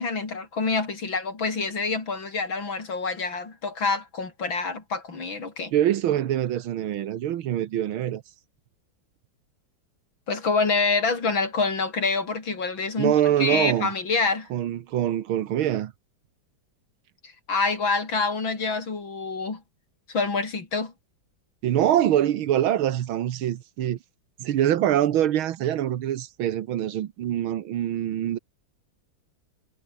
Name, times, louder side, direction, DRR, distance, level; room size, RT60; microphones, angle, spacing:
voice 1, 0.0-5.7 10.3-14.5 17.5-19.6 20.1-20.9, left 4 dB, 70° left, 4.8 m, -26 dB
voice 2, 5.7-8.2 13.0-13.9 14.5-15.9 21.6-24.0 24.4-28.4, right 11 dB, 90° right, 1.9 m, -24 dB
omnidirectional pair, 2.2 m